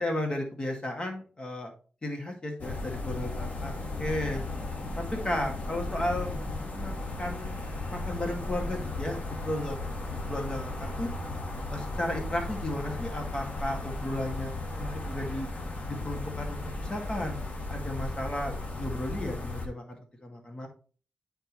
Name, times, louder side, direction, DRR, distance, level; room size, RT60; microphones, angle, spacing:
voice 1, 0.0-1.7 2.0-4.4 5.0-6.4 6.7-6.9 7.2-7.6 7.9-9.8 10.1-11.1 11.7-15.5 15.9-17.4 17.7-20.7, left 1 dB, 30° left, 2 dB, 2.0 m, -34 dB
sound 1, 2.6-19.7, left 2 dB, 60° left, 1.5 m, -35 dB
9.2 x 4.5 x 3.1 m, 0.39 s
wide cardioid pair, 120°, 3 cm